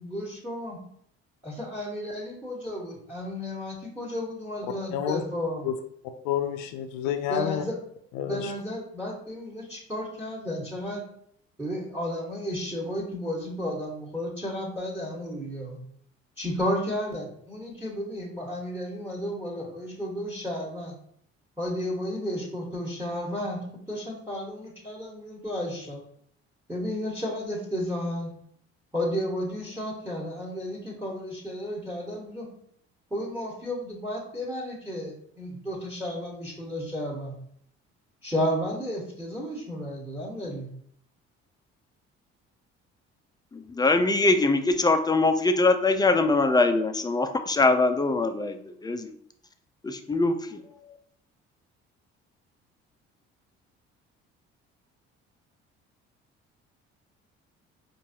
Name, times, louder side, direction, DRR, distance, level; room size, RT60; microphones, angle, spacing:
voice 1, 0.0-0.8 1.4-5.7 7.3-7.8 8.2-11.0 11.6-15.8 16.4-20.9 21.6-26.0 26.7-28.3 28.9-32.5 33.1-37.3 38.2-40.7, equal, 5° right, -3 dB, 1.4 m, -33 dB
voice 2, 6.2-7.6 8.1-8.5, left 9 dB, 70° left, 7 dB, 0.5 m, -29 dB
voice 3, 43.5-49.1 49.8-50.6, left 3 dB, 15° left, 7 dB, 0.4 m, -23 dB
4.5 x 2.6 x 2.8 m, 0.66 s
hypercardioid pair, 55°, 32 cm